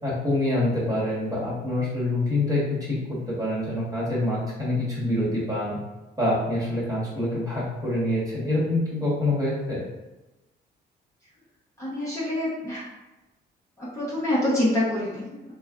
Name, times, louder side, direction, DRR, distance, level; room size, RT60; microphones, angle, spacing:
voice 1, 0.0-2.6 2.9-3.0 3.3-5.8 6.2-9.8, left 1 dB, 20° right, -7 dB, 1.3 m, -26 dB
voice 2, 11.8-12.8 13.8-15.5, left 1 dB, 15° left, -9 dB, 0.9 m, -26 dB
3.2 x 2.2 x 2.4 m, 1.1 s
cardioid pair, 90°, 20 cm